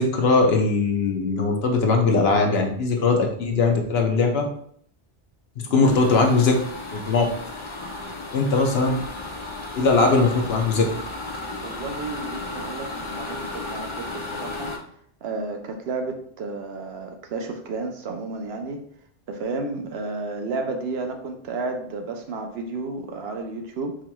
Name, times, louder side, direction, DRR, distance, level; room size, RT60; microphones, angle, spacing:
voice 1, 0.0-4.4 5.6-6.5 6.9-7.3 8.3-9.0 9.7-10.8, left 3 dB, 65° left, 2 dB, 0.9 m, -20 dB
voice 2, 5.7-6.4 10.0-10.1 10.4-10.6 11.6-14.7 15.2-18.8 19.3-24.0, right 3 dB, 70° right, 4 dB, 0.8 m, -32 dB
sound 1, 5.8-14.8, left 2 dB, 50° left, 0.3 m, -34 dB
4.6 x 2.9 x 2.2 m, 0.64 s
omnidirectional pair, 1.2 m